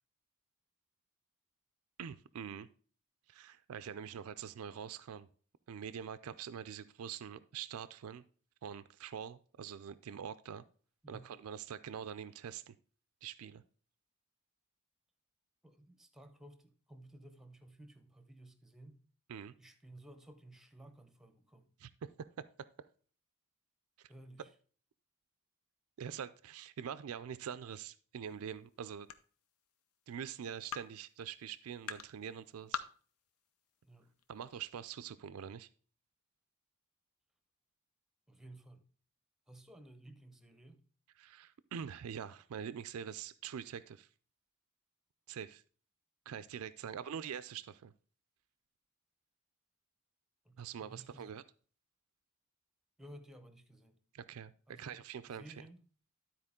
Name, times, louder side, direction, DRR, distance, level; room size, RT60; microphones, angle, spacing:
voice 1, 2.0-2.7 3.3-5.3 5.7-8.2 8.6-10.6 11.1-12.8 13.2-13.6 19.3-19.5 21.8-22.5 24.0-24.1 26.0-29.1 30.1-32.8 34.3-35.7 41.2-44.1 45.3-45.6 46.3-47.9 50.6-51.4 54.1-55.6, right 8 dB, 80° right, 0.4 m, -44 dB
voice 2, 15.6-19.0 19.6-21.7 24.1-24.5 33.8-34.1 38.3-38.8 39.5-40.8 50.4-51.3 53.0-54.0 54.7-55.8, right 1 dB, ahead, 0.7 m, -56 dB
sound 1, 28.2-34.8, left 7 dB, 85° left, 0.7 m, -49 dB
12.0 x 4.4 x 3.6 m
head